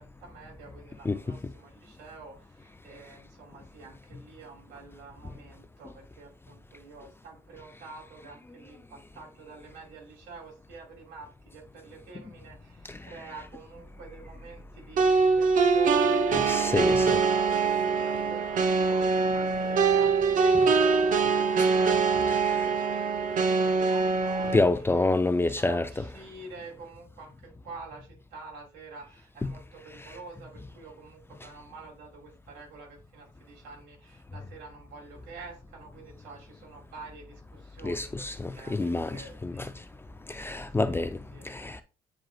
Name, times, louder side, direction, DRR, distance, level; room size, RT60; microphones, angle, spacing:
voice 1, 0.0-16.9 17.3-39.7 40.8-41.0 41.3-41.5, right 4 dB, 90° right, 2.7 m, -48 dB
voice 2, 1.0-1.4 12.9-13.0 16.3-17.2 21.6-21.7 22.3-22.7 24.5-26.0 29.4-29.5 37.8-39.7 40.3-41.2 41.4-41.8, left 2 dB, 15° left, 0.4 m, -28 dB
sound 1, 15.0-24.6, right 5 dB, 50° right, 0.9 m, -23 dB
9.0 x 4.5 x 2.3 m
cardioid pair, 110°, 17 cm